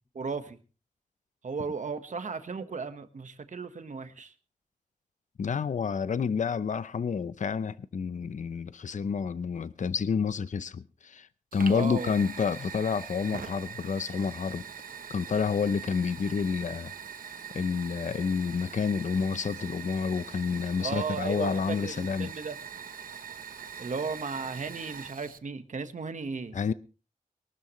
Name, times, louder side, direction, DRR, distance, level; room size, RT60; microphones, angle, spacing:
voice 1, 0.1-0.6 1.4-4.3 11.7-12.2 20.8-22.5 23.8-26.6, right 4 dB, 60° right, 1.4 m, -35 dB
voice 2, 5.4-11.3 11.5-14.6 15.1-16.9 17.5-22.3 26.5-26.7, left 6 dB, 60° left, 0.6 m, -29 dB
Fire, 11.5-25.4, right 7 dB, 80° right, 0.9 m, -43 dB
22.5 x 12.5 x 3.1 m
wide cardioid pair, 125°, 14 cm